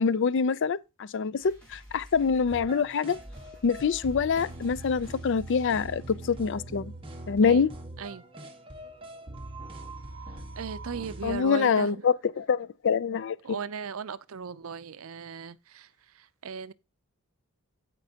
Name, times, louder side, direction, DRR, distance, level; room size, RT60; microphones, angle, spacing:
voice 1, 0.0-3.2 3.6-6.9 7.3-7.7 11.2-13.4, left 6 dB, 55° left, 0.4 m, -25 dB
sound 1, 1.4-6.7, equal, 5° left, 6.0 m, -50 dB
sound 2, 2.5-11.4, right 2 dB, 25° right, 1.3 m, -42 dB
voice 2, 10.6-12.0 13.4-15.9 16.2-16.7, right 6 dB, 65° right, 0.5 m, -37 dB
15.5 x 5.3 x 2.8 m
head